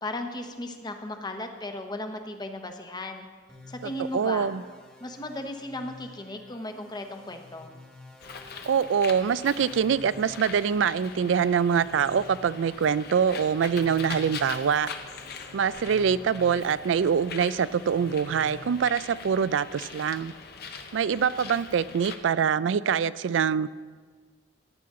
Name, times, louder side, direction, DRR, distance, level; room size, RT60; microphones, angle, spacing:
voice 1, 0.0-3.3 3.7-4.5 5.0-7.7, left 1 dB, 25° left, 5 dB, 0.9 m, -36 dB
sound 1, 3.5-18.8, left 2 dB, 5° left, 1.4 m, -50 dB
voice 2, 4.1-4.6 8.7-14.9 15.5-20.3 20.9-23.7, right 7 dB, 85° right, 17 dB, 0.4 m, -24 dB
Bird, 8.2-22.2, left 5 dB, 60° left, 0.9 m, -42 dB
14.5 x 10.0 x 3.7 m, 1.5 s
head